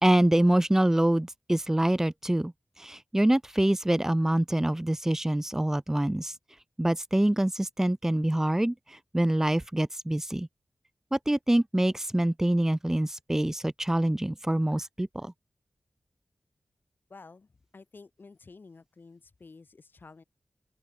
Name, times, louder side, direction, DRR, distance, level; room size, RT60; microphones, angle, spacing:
voice 1, 0.0-2.5 2.8-6.3 6.8-10.5 11.1-15.3, right 1 dB, 10° right, 0.3 m, -25 dB
voice 2, 17.1-20.2, left 4 dB, 60° left, 4.5 m, -51 dB
open air
cardioid pair, 40°, 4 cm